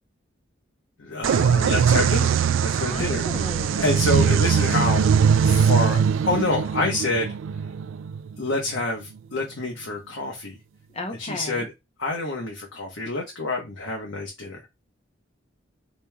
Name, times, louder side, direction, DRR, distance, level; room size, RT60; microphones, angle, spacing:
voice 1, 1.0-2.3 2.6-3.2 3.7-5.1 5.4-7.4 8.4-10.6 11.2-11.7 12.0-14.6, left 2 dB, 85° left, 1.0 m, -27 dB
sound 1, 1.2-8.8, right 7 dB, 85° right, 0.3 m, -21 dB
voice 2, 2.9-3.9 10.9-11.7, left 1 dB, 35° left, 0.8 m, -35 dB
5.1 x 3.0 x 2.3 m
head